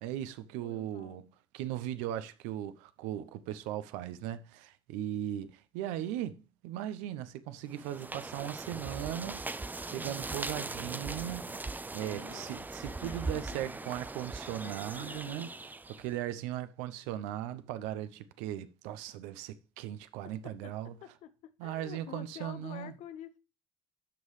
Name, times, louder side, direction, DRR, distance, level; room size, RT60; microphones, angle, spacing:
voice 1, 0.0-1.3 1.5-15.5 15.9-20.9 21.6-22.9, right 12 dB, 80° right, 0.6 m, -38 dB
voice 2, 0.6-1.3 12.0-13.9 14.6-15.5 20.2-20.7 21.0-21.3 21.6-23.4, left 10 dB, 65° left, 0.8 m, -49 dB
sound 1, 7.7-16.1, right 3 dB, 15° right, 0.5 m, -40 dB
13.0 x 5.5 x 3.2 m
hypercardioid pair, 60°, 12 cm